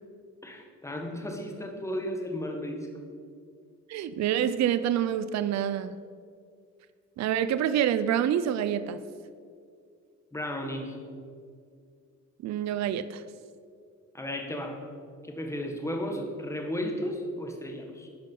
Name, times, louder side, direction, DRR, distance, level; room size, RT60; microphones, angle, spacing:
voice 1, 0.4-2.9 10.3-11.0 14.1-14.8 15.2-18.1, left 1 dB, 10° left, 2 dB, 1.5 m, -34 dB
voice 2, 3.9-5.9 7.2-9.0 12.4-13.2, right 10 dB, 65° right, 13 dB, 0.5 m, -27 dB
10.5 x 5.4 x 5.5 m, 2.2 s
cardioid pair, 90°, 30 cm